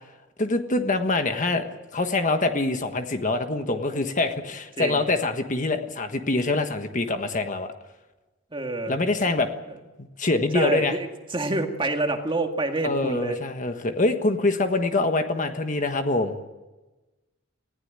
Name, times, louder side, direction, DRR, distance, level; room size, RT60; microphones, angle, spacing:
voice 1, 0.4-1.7 1.9-7.7 8.9-9.5 10.0-11.0 12.8-16.4, left 2 dB, 40° left, 6 dB, 1.4 m, -25 dB
voice 2, 4.8-5.1 8.5-9.0 10.5-13.4, right 2 dB, 25° right, 4 dB, 1.9 m, -27 dB
19.5 x 15.5 x 8.9 m, 1.1 s
head